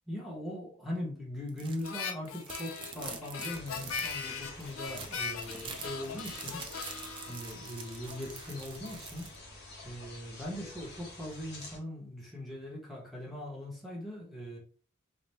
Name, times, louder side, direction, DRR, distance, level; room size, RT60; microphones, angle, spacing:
voice 1, 0.1-6.6 7.3-9.3 9.8-14.6, left 1 dB, ahead, 0.9 m, -40 dB
sound 1, 1.5-1.9 2.2-9.3, right 5 dB, 25° right, 0.4 m, -46 dB
Harmonica, 1.8-8.3, left 6 dB, 75° left, 0.5 m, -40 dB
sound 2, 3.5-11.8, left 2 dB, 50° left, 1.0 m, -48 dB
4.1 x 2.0 x 3.3 m
head